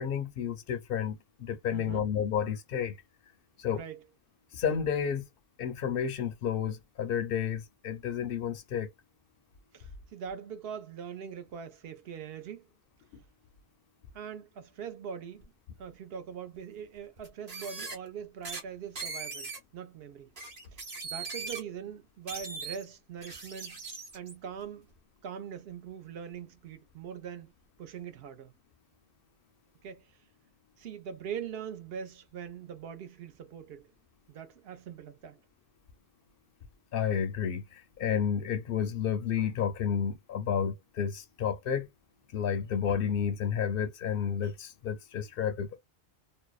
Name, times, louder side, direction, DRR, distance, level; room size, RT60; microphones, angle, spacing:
voice 1, 0.0-3.0 3.6-3.8 4.5-5.2 5.6-8.9 36.9-41.9 42.3-45.8, left 8 dB, 65° left, 0.7 m, -31 dB
voice 2, 1.7-2.1 3.7-4.0 9.7-12.7 14.1-15.5 15.8-20.3 20.7-23.8 24.1-24.9 25.2-27.5 27.8-28.5 29.8-30.1 30.8-33.9 34.3-35.4, right 7 dB, 65° right, 0.8 m, -42 dB
sound 1, 15.4-15.5 17.2-18.0 18.4-18.6 19.0-19.6 20.4-21.6 22.3-22.8 23.2-24.3, right 4 dB, 40° right, 0.9 m, -40 dB
2.6 x 2.1 x 2.3 m
omnidirectional pair, 1.1 m